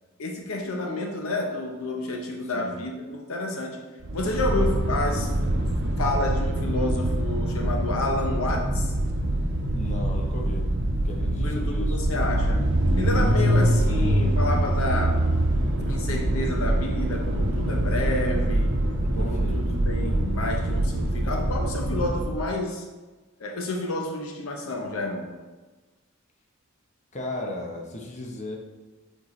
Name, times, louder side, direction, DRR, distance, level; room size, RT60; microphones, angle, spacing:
voice 1, 0.2-3.8 4.1-5.6 6.0-8.9 11.4-12.7 13.0-15.2 15.9-18.7 19.1-22.8 23.4-25.3, left 2 dB, 75° left, 2 dB, 0.9 m, -30 dB
sound 1, 4.0-22.4, right 1 dB, 60° right, 0.8 m, -24 dB
voice 2, 9.7-10.7 11.0-12.0 13.5-13.9 19.1-19.6 27.1-28.6, left 1 dB, 35° left, 0 dB, 0.9 m, -36 dB
7.2 x 4.5 x 3.2 m, 1.2 s
head